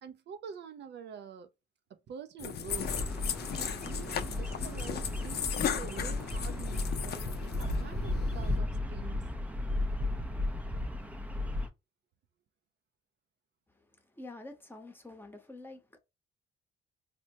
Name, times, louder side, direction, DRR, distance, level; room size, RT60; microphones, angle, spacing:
voice 1, 0.0-1.5 1.9-3.1 3.5-9.2, right 6 dB, 60° right, 0.5 m, -46 dB
sound 1, 2.4-8.6, left 8 dB, 55° left, 0.5 m, -36 dB
Bird vocalization bird call bird song, 2.7-11.7, left 1 dB, 5° right, 0.5 m, -34 dB
voice 2, 13.7-16.0, left 2 dB, 10° left, 0.9 m, -48 dB
4.3 x 2.1 x 2.8 m
cardioid pair, 90°, 20 cm